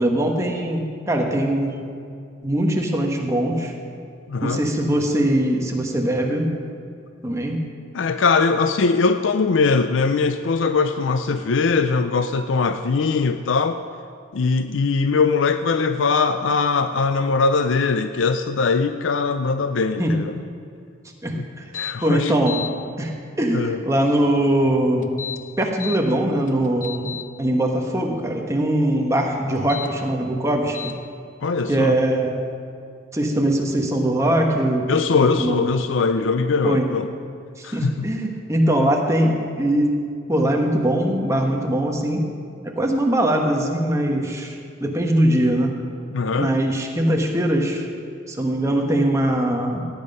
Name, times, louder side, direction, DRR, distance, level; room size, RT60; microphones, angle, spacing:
voice 1, 0.0-1.8 2.4-3.7 4.4-6.5 7.2-7.6 20.0-20.2 21.2-21.7 22.0-22.7 23.0-23.1 23.4-25.1 25.6-30.9 31.7-32.5 33.1-34.9 35.2-35.7 36.6-36.9 37.6-40.0 40.3-42.2 42.6-45.8 46.4-47.9 48.3-49.9, right 1 dB, 15° right, 1 dB, 1.3 m, -21 dB
voice 2, 4.3-4.6 7.9-13.8 14.3-20.3 21.3-21.4 21.7-22.3 23.5-23.8 31.4-32.0 34.9-37.1 37.6-38.1 46.1-46.5, left 4 dB, 75° left, 9 dB, 0.5 m, -21 dB
sound 1, 21.7-21.9 22.3-22.7 25.0-26.0 26.5-27.2 29.6-29.9 30.7-30.9, left 8 dB, 40° left, 0.7 m, -32 dB
16.5 x 9.1 x 5.4 m, 2.3 s
head